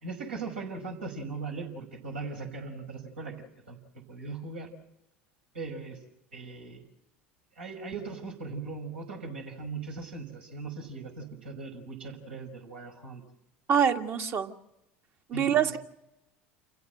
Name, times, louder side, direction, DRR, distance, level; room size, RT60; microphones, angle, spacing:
voice 1, 0.0-3.4 3.7-4.7 5.5-6.0 6.3-6.8 7.6-13.2 15.3-15.8, right 4 dB, 75° right, 0 dB, 5.5 m, -39 dB
voice 2, 13.7-14.5 15.3-15.8, right 8 dB, 35° right, 6 dB, 1.7 m, -25 dB
29.0 x 16.0 x 7.9 m, 0.84 s
figure-of-eight pair, 70°, 6 cm